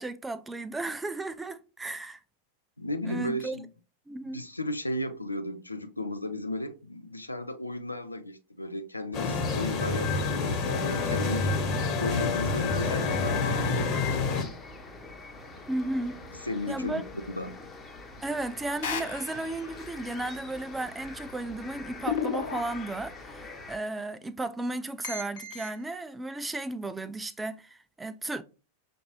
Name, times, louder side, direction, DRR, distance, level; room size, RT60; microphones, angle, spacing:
voice 1, 0.0-2.2 3.0-3.6 4.1-4.4 15.7-16.2 16.7-17.0 18.2-28.4, right 2 dB, 10° right, 0.4 m, -34 dB
voice 2, 2.8-3.7 4.2-11.5 12.0-14.4 16.4-17.0 17.4-17.6, left 1 dB, 85° left, 0.4 m, -35 dB
sound 1, 9.1-14.4, left 4 dB, 30° left, 1.3 m, -28 dB
sound 2, 13.9-23.8, left 3 dB, 15° left, 0.8 m, -45 dB
sound 3, 18.8-19.9 22.0-23.2 25.0-25.8, left 6 dB, 55° left, 1.0 m, -34 dB
5.8 x 2.6 x 3.1 m
figure-of-eight pair, 90°, 0 cm